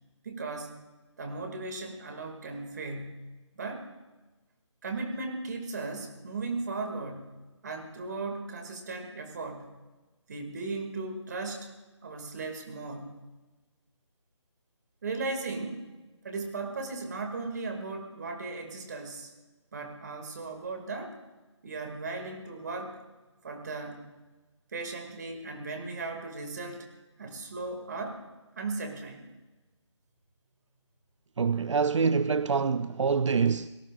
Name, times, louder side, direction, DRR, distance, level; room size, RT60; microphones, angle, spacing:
voice 1, 0.2-0.7 1.2-3.3 3.5-3.9 4.8-7.3 7.6-9.7 10.3-11.7 12.0-13.2 15.0-15.9 16.2-19.3 19.7-21.2 21.6-23.0 23.4-24.0 24.7-26.9 27.2-28.2 28.6-29.3, right 3 dB, 35° right, 2.3 m, -36 dB
voice 2, 31.4-33.7, right 5 dB, 75° right, 0.5 m, -25 dB
27.5 x 17.5 x 2.5 m
figure-of-eight pair, 170°, 16 cm